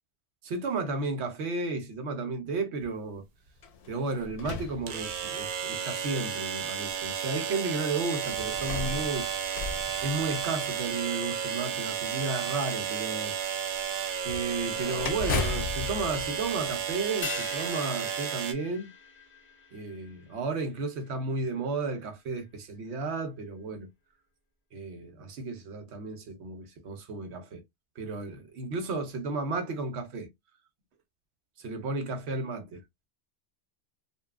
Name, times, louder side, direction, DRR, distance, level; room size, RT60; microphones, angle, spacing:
voice 1, 0.4-3.2 3.9-9.3 10.0-13.4 14.2-18.9 19.7-23.9 24.7-27.6 28.0-30.3 31.6-32.6, right 3 dB, 90° right, 1.0 m, -33 dB
sound 1, 2.8-2.9 4.9-18.5, right 8 dB, 60° right, 0.6 m, -33 dB
sound 2, 3.6-5.6 6.3-6.4 8.3-10.9 14.2-17.3, left 4 dB, 65° left, 0.7 m, -37 dB
sound 3, 17.2-21.9 22.2-22.3, left 4 dB, 15° left, 0.7 m, -43 dB
2.7 x 2.3 x 2.4 m
omnidirectional pair, 1.1 m